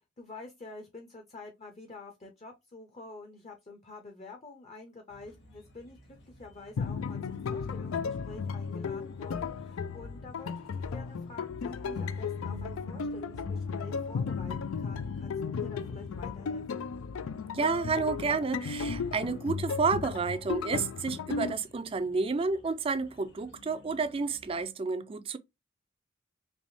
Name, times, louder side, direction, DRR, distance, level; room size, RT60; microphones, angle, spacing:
voice 1, 0.2-6.0 6.2-16.6, left 3 dB, 30° left, 0.6 m, -48 dB
sound 1, 5.1-24.7, right 1 dB, 55° left, 1.3 m, -54 dB
sound 2, 6.8-21.5, left 5 dB, 85° left, 0.4 m, -35 dB
voice 2, 17.5-25.4, right 4 dB, 25° right, 0.3 m, -30 dB
3.4 x 3.0 x 2.5 m
head